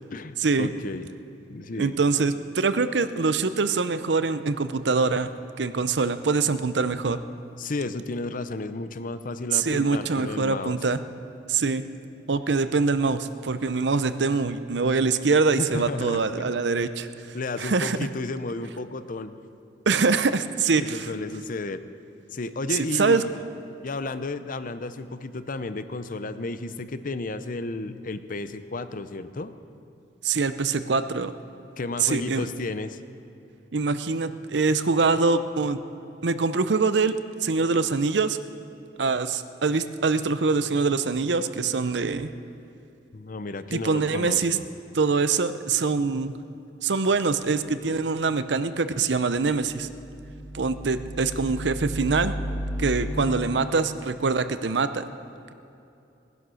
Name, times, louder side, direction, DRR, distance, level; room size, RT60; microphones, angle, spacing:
voice 1, 0.1-1.0 1.5-1.9 7.6-10.8 15.6-16.5 17.3-19.4 20.8-21.8 22.3-23.4 23.8-29.5 31.8-33.0 43.1-44.7, left 2 dB, 50° left, 11 dB, 0.7 m, -33 dB
voice 2, 1.8-5.3 5.6-7.2 9.5-11.0 11.5-11.8 12.3-17.1 17.6-18.0 19.9-21.1 23.0-23.2 30.2-31.3 32.0-32.5 33.7-35.8 36.2-38.4 39.0-42.3 43.7-44.6 44.9-46.3 46.8-49.9 50.5-52.3 52.8-55.0, right 4 dB, 70° right, 12 dB, 0.7 m, -24 dB
sound 1, 49.3-54.0, equal, 20° right, 1.7 m, -34 dB
19.0 x 11.0 x 6.3 m, 2.7 s
head